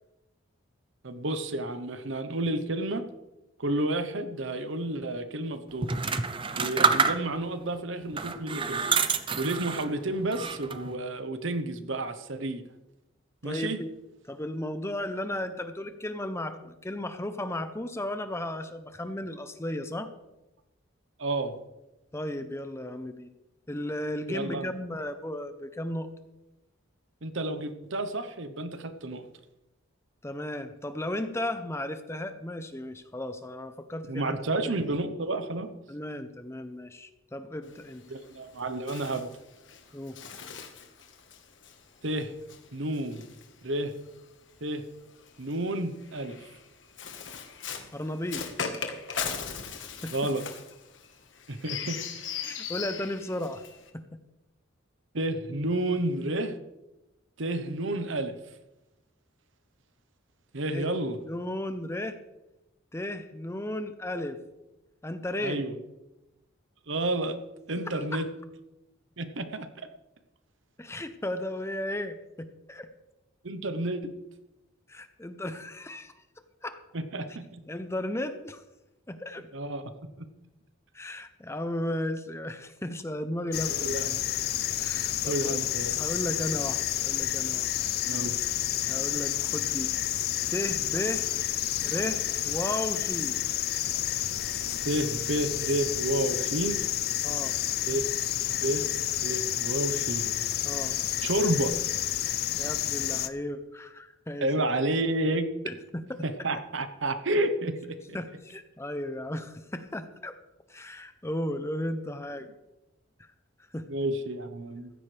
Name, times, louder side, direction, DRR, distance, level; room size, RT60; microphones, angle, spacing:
voice 1, 1.0-3.0 3.6-6.0 6.5-8.8 9.4-12.6 13.4-13.8 21.2-21.6 24.3-24.7 27.2-29.3 34.1-35.7 38.1-39.3 42.0-42.4 42.7-43.2 43.6-44.0 44.6-44.9 45.4-46.4 50.1-50.5 51.5-52.0 55.1-56.6 57.4-58.4 60.5-61.2 65.4-65.8 66.9-67.4 67.7-68.3 69.2-69.7 73.4-74.1 76.9-77.6 79.5-79.8 83.7-84.2 85.2-86.0 88.0-88.3 94.8-96.8 97.8-98.1 98.5-98.9 99.2-100.3 101.2-101.7 104.4-105.5 106.2-108.2 113.9-114.9, right 1 dB, 70° right, 9 dB, 1.0 m, -30 dB
sound 1, 5.8-7.5 8.1-9.9 10.3-10.9, right 5 dB, 25° right, 0.6 m, -27 dB
voice 2, 13.4-13.9 14.3-20.1 22.1-23.3 23.7-26.1 30.2-34.7 35.9-38.0 39.9-40.2 47.9-48.4 50.0-50.1 52.4-53.6 60.7-60.9 61.3-62.2 62.9-64.4 65.0-65.6 67.9-68.2 70.8-72.9 74.9-76.1 76.6-76.8 77.7-78.6 79.1-79.5 80.9-84.0 84.8-85.6 85.9-87.7 88.9-89.9 90.5-91.3 91.8-93.4 97.2-97.5 100.6-101.0 102.5-104.7 105.6-106.2 108.1-110.4 110.7-112.5 113.7-113.8, left 1 dB, 15° left, 10 dB, 0.7 m, -35 dB
Bird, 37.6-44.2 45.1-53.9, left 6 dB, 65° left, 1.5 m, -39 dB
sound 2, 83.5-103.3, left 12 dB, 50° left, 0.5 m, -30 dB
15.5 x 13.5 x 3.4 m, 0.99 s
head